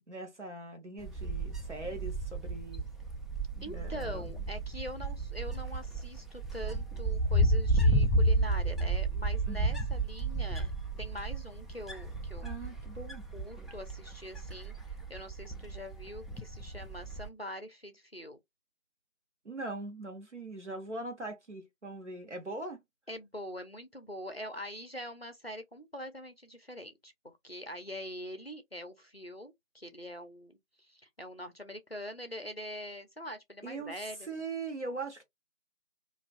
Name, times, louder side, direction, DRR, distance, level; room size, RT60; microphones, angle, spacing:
voice 1, 0.0-2.8 3.7-4.3 9.5-9.8 12.4-13.2 19.4-22.8 33.6-33.9 34.2-35.2, right 2 dB, 60° right, 0.9 m, -41 dB
Wind, 1.0-17.3, right 1 dB, ahead, 0.4 m, -32 dB
voice 2, 3.6-10.7 11.0-12.5 13.3-14.7 15.1-18.4 23.1-34.3, equal, 50° left, 0.5 m, -43 dB
2.3 x 2.2 x 2.4 m
figure-of-eight pair, 175°, 39 cm